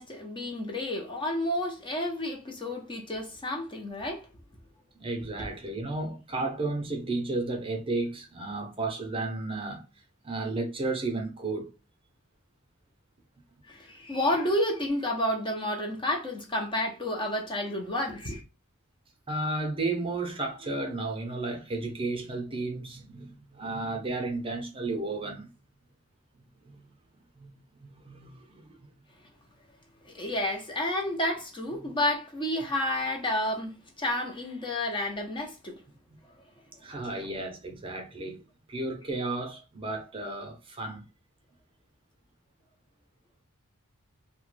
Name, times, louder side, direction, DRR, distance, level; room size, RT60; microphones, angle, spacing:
voice 1, 0.0-4.3 5.4-5.5 13.7-18.4 30.0-35.8 37.1-37.2, left 1 dB, 20° left, 0.6 m, -30 dB
voice 2, 4.9-9.9 10.2-11.7 19.3-25.5 26.6-26.8 27.4-27.5 27.8-28.8 31.8-31.9 36.8-38.4 38.7-41.0, right 2 dB, 25° right, 0.7 m, -33 dB
2.9 x 2.2 x 3.1 m
head